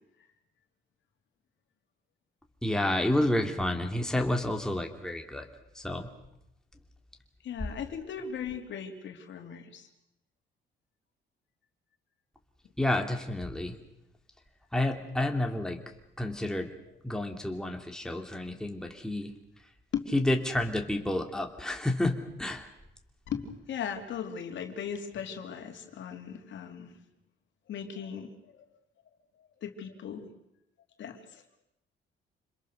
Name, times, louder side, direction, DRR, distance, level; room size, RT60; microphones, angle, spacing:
voice 1, 2.6-5.4 5.8-6.1 12.8-13.7 14.7-15.8 16.2-16.7 17.0-19.3 20.1-22.6, left 1 dB, 5° left, 3 dB, 2.8 m, -30 dB
voice 2, 7.4-9.9 17.3-17.4 18.4-18.5 19.9-20.1 23.3-26.9 27.7-28.6 29.4-30.3 31.0-31.4, left 7 dB, 70° left, 4 dB, 3.1 m, -38 dB
27.0 x 21.5 x 6.6 m, 0.85 s
cardioid pair, 90°, 20 cm